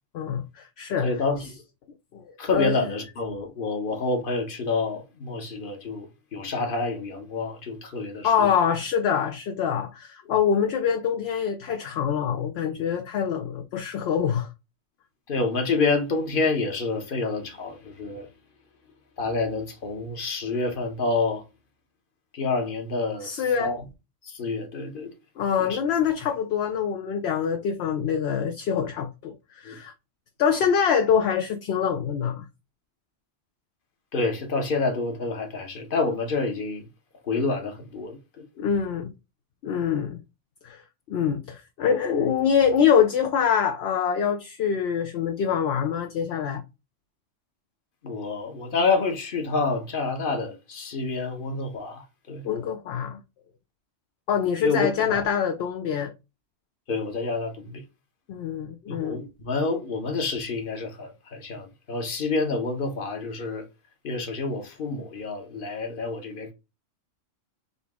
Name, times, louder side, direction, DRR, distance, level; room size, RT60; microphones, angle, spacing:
voice 1, 0.1-1.1 2.1-2.3 2.5-2.7 8.2-14.5 23.2-23.7 25.4-29.9 30.4-32.5 38.6-39.1 39.6-40.2 40.6-40.8 41.1-46.6 52.4-53.2 54.3-56.1 58.3-59.2, left 7 dB, 65° left, 0.7 m, -25 dB
voice 2, 1.0-1.5 2.4-8.5 15.3-18.3 19.2-21.4 22.3-23.8 24.2-25.1 25.6-25.8 29.6-29.8 34.1-36.8 37.2-38.5 48.0-52.5 54.6-55.2 56.9-57.8 58.9-63.6 64.0-66.5, left 3 dB, 45° left, 1.1 m, -28 dB
4.0 x 2.8 x 3.5 m
omnidirectional pair, 1.3 m